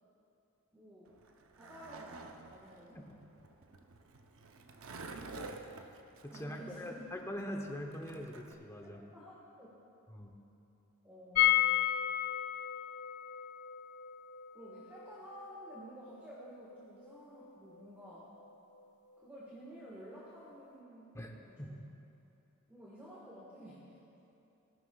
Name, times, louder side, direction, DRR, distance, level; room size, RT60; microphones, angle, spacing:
voice 1, 0.7-1.2 1.6-3.0 6.3-7.2 9.1-9.7 11.0-12.0 14.5-18.3 19.2-21.8 22.7-24.0, equal, 10° right, -7 dB, 1.6 m, -52 dB
Skateboard, 1.1-8.5, right 3 dB, 65° right, 0.7 m, -50 dB
voice 2, 6.2-9.0 10.1-10.3 21.1-21.3 21.6-21.8, equal, 15° left, 1 dB, 0.9 m, -43 dB
sound 1, 11.4-17.1 17.4-17.5 17.7-17.8, left 13 dB, 85° left, 0.5 m, -33 dB
18.0 x 11.5 x 2.4 m, 2.9 s
head